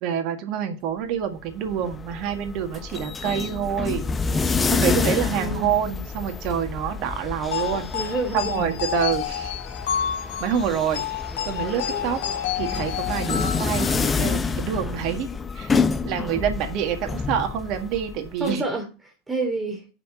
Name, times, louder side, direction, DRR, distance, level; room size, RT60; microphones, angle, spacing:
voice 1, 0.0-4.1 4.7-7.9 8.3-9.5 10.4-11.0 11.5-12.2 12.5-15.3 15.6-15.7 16.0-18.6, right 8 dB, 55° right, 1.8 m, -27 dB
sound 1, 1.5-18.5, left 4 dB, 25° left, 0.8 m, -28 dB
voice 2, 4.0-4.6 5.0-5.7 7.7-8.7 18.4-18.9 19.3-19.8, right 3 dB, 15° right, 2.9 m, -29 dB
sound 2, 7.5-14.4, left 9 dB, 70° left, 1.1 m, -30 dB
7.1 x 6.0 x 6.9 m
hypercardioid pair, 75°, 0 cm